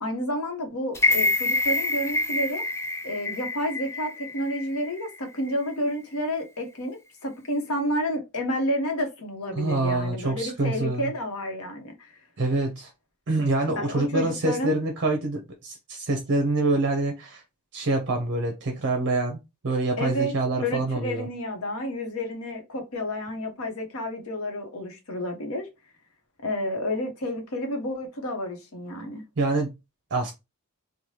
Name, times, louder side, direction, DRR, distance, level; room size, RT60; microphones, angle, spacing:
voice 1, 0.0-2.6 3.0-12.1 13.7-14.8 20.0-20.3 20.6-25.7 26.4-29.2, equal, 70° left, 0.8 m, -30 dB
sound 1, 1.0-5.1 5.5-5.6, left 2 dB, 10° left, 0.3 m, -26 dB
voice 2, 9.5-11.1 12.4-12.9 13.3-17.4 17.7-19.4 19.6-21.3 29.4-29.7 30.1-30.3, right 2 dB, 55° right, 0.6 m, -26 dB
3.1 x 2.1 x 2.7 m
head